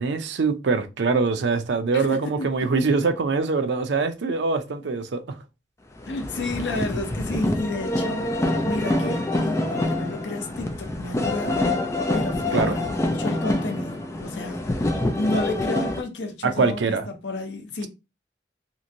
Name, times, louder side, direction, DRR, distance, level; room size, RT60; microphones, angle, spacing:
voice 1, 0.0-5.4 12.5-12.7 16.4-17.1, right 4 dB, 80° right, 0.5 m, -23 dB
voice 2, 1.9-2.5 6.1-8.3 8.6-11.6 12.1-17.9, left 2 dB, 85° left, 0.7 m, -31 dB
sound 1, 6.0-16.0, left 1 dB, 15° left, 0.3 m, -26 dB
3.0 x 2.5 x 2.6 m
head